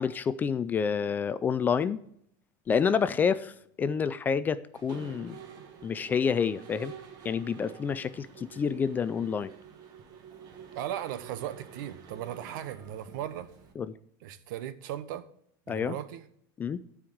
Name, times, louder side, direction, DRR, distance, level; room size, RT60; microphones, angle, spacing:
voice 1, 0.0-2.0 2.7-3.5 3.8-5.4 5.8-6.9 7.2-9.5 13.8-13.9 15.7-15.9 16.6-16.8, left 6 dB, 15° left, 14 dB, 0.3 m, -28 dB
Mechanisms, 4.7-13.7, right 7 dB, 40° right, 1.6 m, -48 dB
voice 2, 10.7-13.5 14.2-15.3 15.7-16.2, right 11 dB, 70° right, 13 dB, 1.0 m, -37 dB
12.0 x 4.8 x 7.7 m, 0.67 s
supercardioid pair, 165°, 11 cm